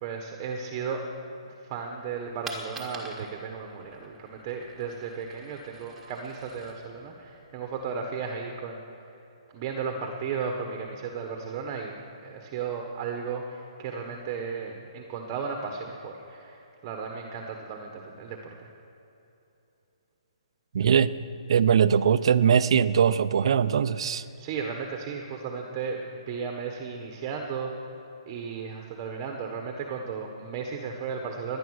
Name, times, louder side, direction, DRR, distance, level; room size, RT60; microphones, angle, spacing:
voice 1, 0.0-1.0 1.4-8.8 9.5-12.0 12.2-18.4 24.4-27.9 28.3-31.6, right 5 dB, 25° right, 2 dB, 1.3 m, -35 dB
Coin (dropping), 2.1-8.1, right 3 dB, 5° right, 1.7 m, -46 dB
voice 2, 20.7-21.1 21.5-24.3, right 7 dB, 55° right, 14 dB, 0.6 m, -21 dB
18.5 x 10.5 x 6.4 m, 2.9 s
hypercardioid pair, 160°, 3 cm